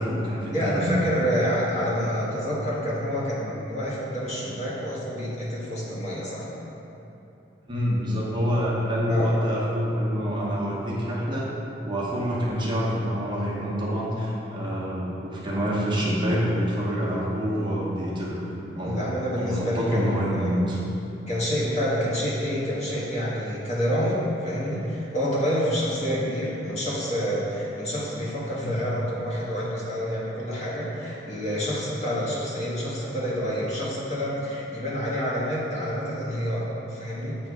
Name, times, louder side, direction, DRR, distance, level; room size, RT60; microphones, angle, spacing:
voice 1, 0.0-0.9 7.7-11.5 11.8-18.5 18.7-18.9 19.4-20.8 28.6-28.7, equal, 25° right, -6 dB, 1.0 m, -26 dB
voice 2, 0.5-6.5 9.1-9.3 18.8-20.5 21.3-37.4, equal, 40° left, -7 dB, 1.4 m, -28 dB
7.9 x 3.3 x 4.8 m, 2.9 s
head